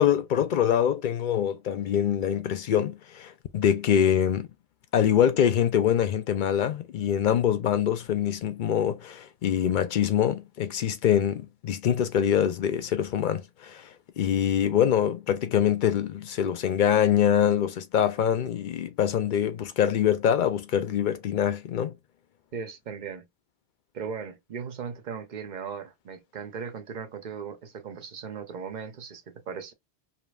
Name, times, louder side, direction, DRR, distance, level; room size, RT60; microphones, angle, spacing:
voice 1, 0.0-4.5 4.9-13.9 14.2-21.9, left 9 dB, 60° left, 0.6 m, -24 dB
voice 2, 22.5-23.3 23.9-29.7, right 6 dB, 50° right, 0.7 m, -37 dB
5.0 x 2.7 x 2.3 m
omnidirectional pair, 1.1 m